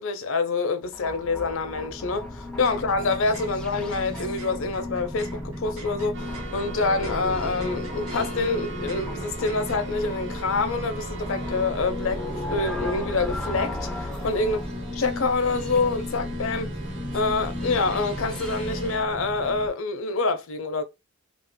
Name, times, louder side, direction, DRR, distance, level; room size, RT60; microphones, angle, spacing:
voice 1, 0.0-14.6 15.0-16.8 17.1-20.8, left 3 dB, 60° left, 0.5 m, -26 dB
sound 1, 0.8-19.7, left 1 dB, 5° left, 0.3 m, -34 dB
sound 2, 2.4-9.8, right 5 dB, 75° right, 1.0 m, -48 dB
sound 3, 6.1-19.0, right 2 dB, 50° right, 0.5 m, -39 dB
2.4 x 2.0 x 3.5 m
head